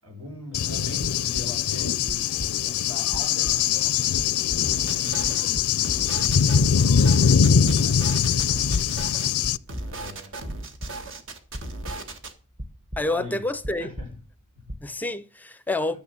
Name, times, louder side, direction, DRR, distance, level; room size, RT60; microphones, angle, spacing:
voice 1, 0.0-5.8 6.1-8.6 9.8-10.4 13.1-13.5 13.8-14.2 14.5-14.8 15.9-16.0, left 1 dB, 85° right, 5.2 m, -41 dB
Cricket / Thunder, 0.5-9.6, left 7 dB, 80° left, 0.5 m, -22 dB
sound 1, 1.0-1.7 2.0-2.8 3.1-4.8 5.2-6.0 6.3-7.0 7.3-8.0 8.3-9.0 9.4-10.2 10.4-11.1 11.5-12.3 12.6-13.3 13.6-14.4 14.7-14.9, equal, 40° right, 1.6 m, -38 dB
sound 2, 4.6-5.4 5.8-9.3 9.7-12.3, right 2 dB, 60° right, 1.8 m, -37 dB
voice 2, 13.0-13.9 14.8-16.0, left 2 dB, 10° left, 0.6 m, -28 dB
12.5 x 6.6 x 6.9 m
head